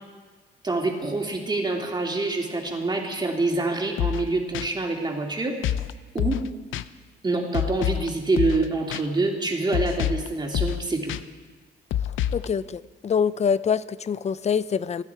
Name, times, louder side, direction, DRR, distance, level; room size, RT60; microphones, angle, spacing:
voice 1, 0.6-5.5 6.1-6.4 7.2-11.1, right 3 dB, 20° right, 1 dB, 2.9 m, -26 dB
sound 1, 4.0-4.3 4.5-4.7 5.6-5.9 6.2-6.5 6.7-6.8 7.5-8.1 8.4-8.6 8.9-9.0 9.7-10.3 10.5-10.8 11.1-11.2 11.9-12.5, left 11 dB, 80° left, 0.6 m, -26 dB
voice 2, 12.3-15.0, left 7 dB, 35° left, 17 dB, 0.5 m, -25 dB
27.0 x 9.9 x 4.7 m, 1.4 s
cardioid pair, 90°, 20 cm